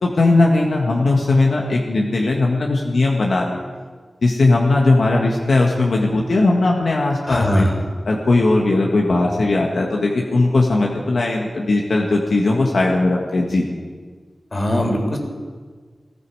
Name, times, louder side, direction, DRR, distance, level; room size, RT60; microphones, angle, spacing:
voice 1, 0.0-3.6 4.2-7.7 8.1-13.6, left 2 dB, 80° left, -1 dB, 1.7 m, -18 dB
voice 2, 7.3-7.7 14.5-15.2, equal, 45° left, 2 dB, 3.7 m, -20 dB
20.0 x 14.0 x 4.9 m, 1.5 s
cardioid pair, 50°, 0 cm